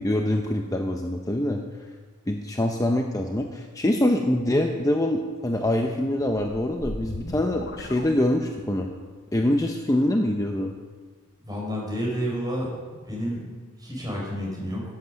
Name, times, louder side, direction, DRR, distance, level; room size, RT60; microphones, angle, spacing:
voice 1, 0.0-1.6 2.3-8.9 9.3-10.7, left 1 dB, 15° left, 3 dB, 0.7 m, -24 dB
sound 1, 6.1-8.8, left 2 dB, 50° left, 1.1 m, -38 dB
voice 2, 11.4-12.7 13.1-13.4 13.8-14.8, equal, 20° right, -4 dB, 5.2 m, -29 dB
16.5 x 8.2 x 6.5 m, 1.5 s
head